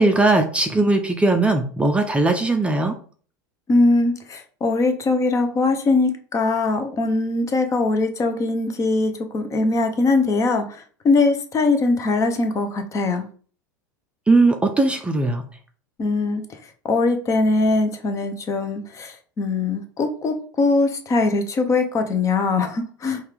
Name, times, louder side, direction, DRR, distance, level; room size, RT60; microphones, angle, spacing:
voice 1, 0.0-2.9 14.3-15.4, right 2 dB, 10° right, 4 dB, 0.5 m, -19 dB
voice 2, 3.7-10.6 11.0-13.2 16.0-16.4 16.8-23.2, left 3 dB, 30° left, 7 dB, 0.7 m, -21 dB
4.2 x 2.4 x 3.4 m, 0.43 s
hypercardioid pair, 90°, 10 cm